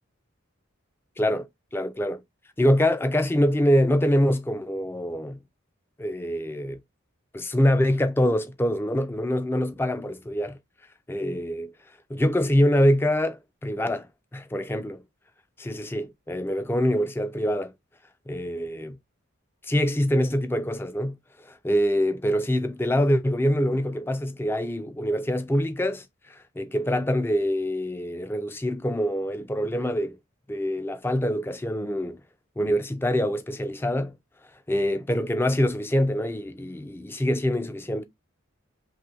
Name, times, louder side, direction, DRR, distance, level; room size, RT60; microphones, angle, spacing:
voice 1, 1.2-2.2 2.6-5.4 6.0-6.8 7.3-10.6 11.1-11.7 12.1-14.1 14.3-15.0 15.6-17.7 18.3-19.0 19.6-30.2 30.5-32.2 32.6-34.1 34.7-38.0, equal, 10° left, 0.3 m, -25 dB
3.0 x 2.4 x 2.8 m
head